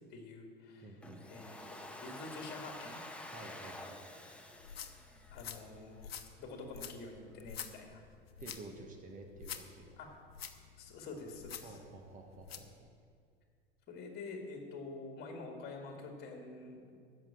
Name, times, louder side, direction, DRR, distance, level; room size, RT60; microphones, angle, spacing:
voice 1, 0.1-1.0 1.3-3.0 5.3-6.1 6.4-8.0 10.0-10.1 10.8-11.8 13.9-17.0, left 3 dB, 30° left, 2 dB, 2.2 m, -47 dB
voice 2, 0.8-1.3 3.3-4.2 8.4-10.0 11.6-12.9, right 2 dB, 25° right, 3 dB, 1.5 m, -51 dB
Domestic sounds home sounds, 1.0-6.0, left 1 dB, 5° left, 1.1 m, -49 dB
sound 1, 4.5-12.7, left 8 dB, 75° left, 1.0 m, -49 dB
14.0 x 6.0 x 8.4 m, 2.2 s
figure-of-eight pair, 85°, 31 cm